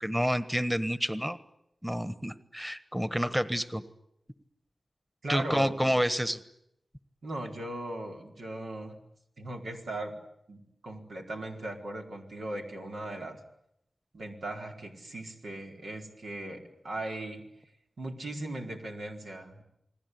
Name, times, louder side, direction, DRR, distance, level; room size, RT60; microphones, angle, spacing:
voice 1, 0.0-1.4 1.8-3.8 5.3-6.4, equal, 5° right, 13 dB, 1.4 m, -29 dB
voice 2, 5.2-5.8 7.2-8.9 9.4-10.2 10.5-13.4 14.1-17.5 18.0-19.6, right 1 dB, 90° right, 1 dB, 4.6 m, -38 dB
29.0 x 20.5 x 9.6 m, 0.78 s
wide cardioid pair, 75°, 0 cm